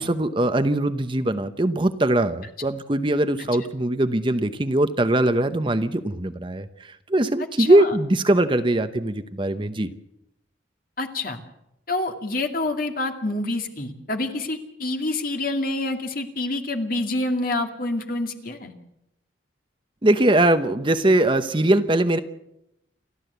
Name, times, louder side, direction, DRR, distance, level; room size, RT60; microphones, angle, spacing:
voice 1, 0.0-9.9 20.0-22.2, right 1 dB, 25° right, 10 dB, 0.8 m, -21 dB
voice 2, 7.6-7.9 11.0-11.4 11.9-18.7, left 2 dB, 45° left, 4 dB, 2.3 m, -27 dB
29.0 x 12.0 x 8.1 m, 0.82 s
head